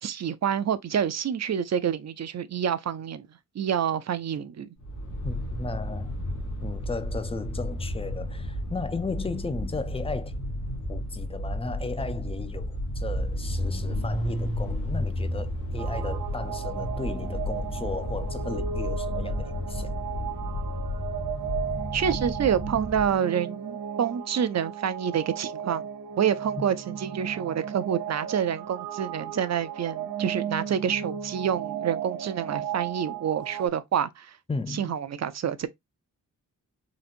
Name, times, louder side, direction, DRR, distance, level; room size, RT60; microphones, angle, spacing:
voice 1, 0.0-3.3 3.5-4.7 21.9-25.8 26.2-34.4 34.7-35.7, right 8 dB, 55° right, 0.5 m, -28 dB
sound 1, 4.8-23.1, left 1 dB, 60° left, 1.5 m, -32 dB
voice 2, 5.2-6.1 6.6-10.4 10.9-19.9 26.6-26.7 34.5-35.0, left 3 dB, 15° left, 0.5 m, -35 dB
sound 2, 15.8-33.7, right 8 dB, 90° right, 0.7 m, -35 dB
4.0 x 2.6 x 2.5 m
cardioid pair, 75°, 33 cm